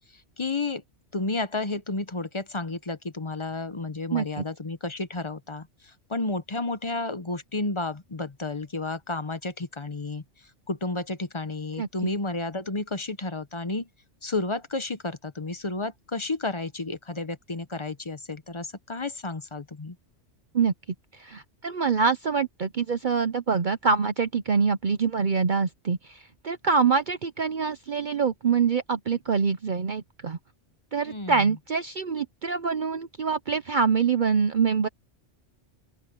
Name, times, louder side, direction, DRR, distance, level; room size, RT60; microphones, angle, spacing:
voice 1, 0.4-0.8 1.1-5.7 6.1-10.2 10.7-13.9 14.2-20.0 31.1-31.4, left 3 dB, 30° left, 0.9 m, -31 dB
voice 2, 4.1-4.4 11.8-11.9 20.5-20.7 21.2-30.4 30.9-34.9, right 5 dB, 50° right, 0.8 m, -25 dB
open air
omnidirectional pair, 1.2 m